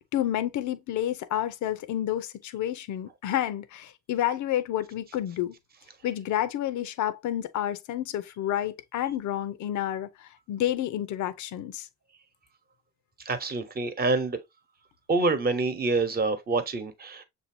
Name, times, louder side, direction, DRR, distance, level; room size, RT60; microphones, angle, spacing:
voice 1, 0.1-5.6 6.0-11.9, left 12 dB, 75° left, 0.7 m, -30 dB
voice 2, 13.2-14.4 15.1-17.2, right 3 dB, 30° right, 1.0 m, -26 dB
6.7 x 2.7 x 2.7 m
cardioid pair, 90°, 30 cm